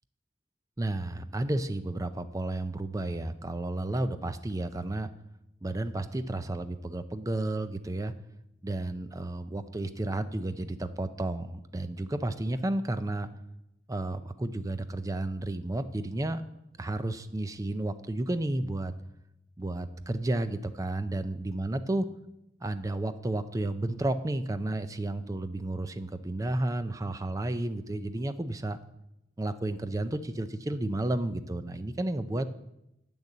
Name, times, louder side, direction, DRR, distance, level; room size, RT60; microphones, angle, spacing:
voice 1, 0.8-5.1 5.6-8.1 8.6-13.3 13.9-16.4 16.8-18.9 19.6-22.1 22.6-28.8 29.4-32.5, right 1 dB, 20° right, 11 dB, 0.4 m, -32 dB
8.6 x 6.6 x 7.3 m, 0.87 s
head